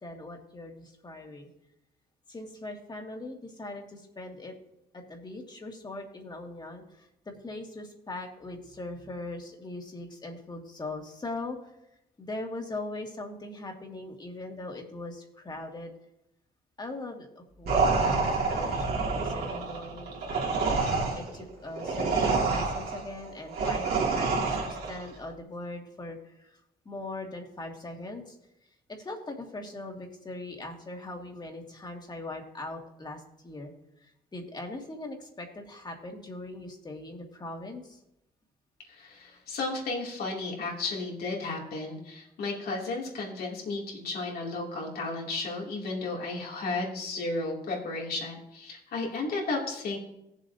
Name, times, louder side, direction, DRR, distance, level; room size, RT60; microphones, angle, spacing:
voice 1, 0.0-1.5 2.3-4.5 4.9-11.7 12.2-15.9 16.8-20.4 21.2-26.6 26.9-28.4 28.9-33.7 34.0-38.0, left 2 dB, 25° left, 2 dB, 2.0 m, -40 dB
sound 1, 17.7-25.0, right 4 dB, 80° right, 2.6 m, -28 dB
voice 2, 38.9-50.0, left 3 dB, 75° left, -2 dB, 2.7 m, -33 dB
18.0 x 7.3 x 2.8 m, 0.84 s
cardioid pair, 105°, 16 cm